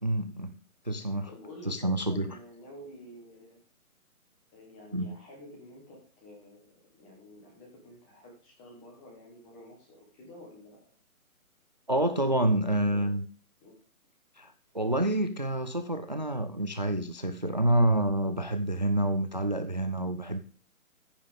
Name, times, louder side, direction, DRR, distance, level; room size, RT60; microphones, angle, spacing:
voice 1, 0.0-0.5 0.8-1.3 1.6-2.4 4.9-5.1 11.9-13.2 14.4-20.4, right 1 dB, 35° right, 9 dB, 0.4 m, -28 dB
voice 2, 1.2-3.6 4.5-10.9 13.6-13.8, left 1 dB, 5° left, -1 dB, 1.0 m, -50 dB
15.0 x 5.6 x 3.4 m, 0.41 s
hypercardioid pair, 170°, 43 cm